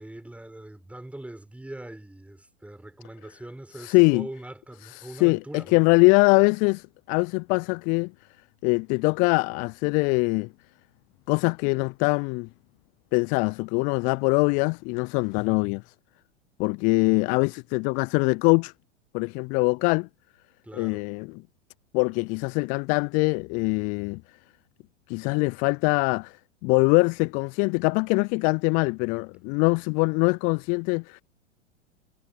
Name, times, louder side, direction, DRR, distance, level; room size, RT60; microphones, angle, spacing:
voice 1, 0.0-5.8 20.6-21.1, right 1 dB, 5° right, 5.8 m, -42 dB
voice 2, 3.8-4.3 4.8-8.1 8.6-10.5 11.3-12.5 13.1-15.9 16.6-18.7 19.1-20.1 20.7-21.4 21.9-24.2 25.1-31.2, left 33 dB, 25° left, 0.4 m, -23 dB
figure-of-eight pair, 95°, 37 cm